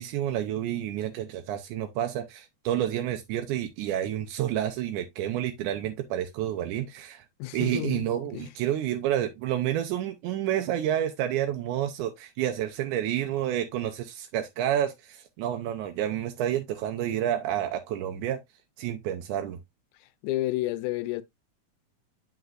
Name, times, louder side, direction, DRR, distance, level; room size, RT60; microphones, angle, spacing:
voice 1, 0.0-7.3 7.5-18.4 18.8-19.6, right 11 dB, 90° right, 2.2 m, -29 dB
voice 2, 7.4-8.1 8.3-8.5 19.9-21.2, left 16 dB, 85° left, 2.0 m, -31 dB
8.0 x 5.4 x 2.5 m
omnidirectional pair, 3.5 m